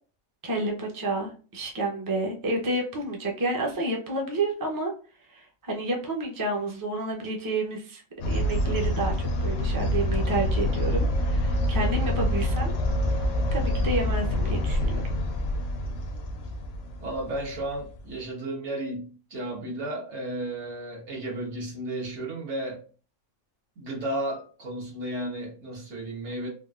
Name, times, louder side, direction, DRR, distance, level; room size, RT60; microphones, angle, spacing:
voice 1, 0.4-4.9 5.3-12.7 13.5-15.0, right 2 dB, 25° right, -1 dB, 0.5 m, -30 dB
sound 1, 8.2-18.0, left 1 dB, 65° left, 0.7 m, -26 dB
voice 2, 17.0-22.8 23.8-26.5, right 1 dB, 65° right, -2 dB, 1.4 m, -33 dB
3.7 x 2.4 x 2.3 m, 0.38 s
omnidirectional pair, 1.3 m